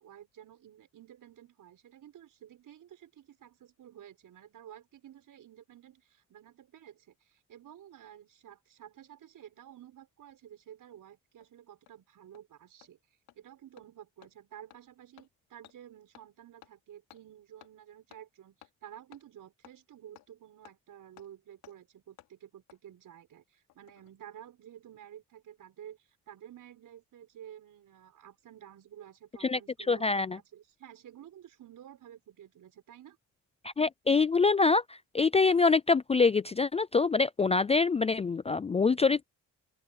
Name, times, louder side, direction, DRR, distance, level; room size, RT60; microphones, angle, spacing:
voice 1, 0.0-13.0 13.3-30.0 30.3-33.2, right 10 dB, 65° right, 6.6 m, -52 dB
Hammer, 10.9-11.0 11.4-11.5 11.9-12.0 12.3-12.4 12.8-12.9 13.3-13.4 13.8-13.9 14.2-14.3 14.7-14.8 15.2-15.3 15.6-15.8 16.1-16.3 16.6-16.7 17.1-17.2 17.6-17.7 18.1-18.2 18.6-18.7 19.1-19.2 19.6-19.8 20.2-20.3 20.6-20.8 21.2-21.3 21.6-21.8 22.2-22.3 22.7-22.8 23.7-24.1 24.4-24.5, left 14 dB, 85° left, 3.8 m, -56 dB
voice 2, 29.9-30.4 33.6-39.3, left 4 dB, 20° left, 0.4 m, -25 dB
open air
cardioid pair, 95°, 35 cm